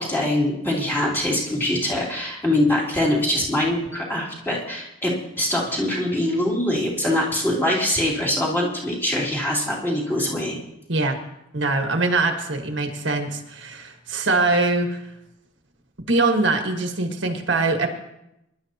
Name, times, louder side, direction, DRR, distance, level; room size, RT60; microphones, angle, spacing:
voice 1, 0.0-10.6, left 1 dB, 10° left, -5 dB, 3.0 m, -23 dB
voice 2, 11.5-15.0 16.1-17.9, right 3 dB, 65° right, 4 dB, 1.5 m, -22 dB
23.0 x 11.5 x 2.9 m, 0.84 s
head